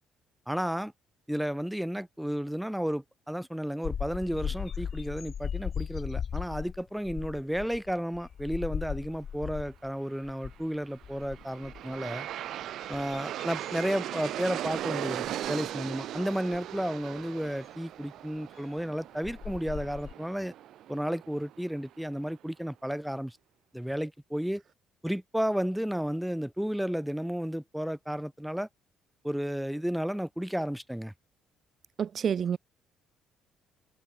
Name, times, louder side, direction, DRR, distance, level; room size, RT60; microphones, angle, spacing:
voice 1, 0.5-0.9 1.3-12.3 12.9-20.5 20.9-23.4 23.7-24.6 25.0-28.7 29.2-31.1, equal, ahead, 1.0 m, -32 dB
sound 1, 3.8-9.9 10.2-10.6 11.0-12.0 12.6-14.8 15.2-15.5 16.5-16.6 18.8-18.9 19.2-20.1, left 8 dB, 45° left, 1.9 m, -37 dB
Aircraft, 10.9-22.0, right 12 dB, 70° right, 6.5 m, -38 dB
voice 2, 32.0-32.6, right 8 dB, 45° right, 0.7 m, -28 dB
cardioid pair, 110°, 0 cm